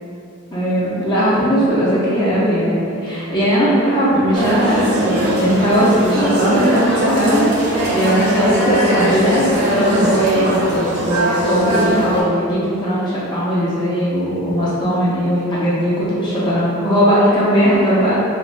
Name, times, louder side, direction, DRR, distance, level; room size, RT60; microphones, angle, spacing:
voice 1, 0.5-18.1, equal, 20° left, -9 dB, 0.5 m, -18 dB
sound 1, 4.3-12.2, right 1 dB, 80° right, 0.6 m, -20 dB
3.3 x 2.1 x 2.4 m, 2.6 s
head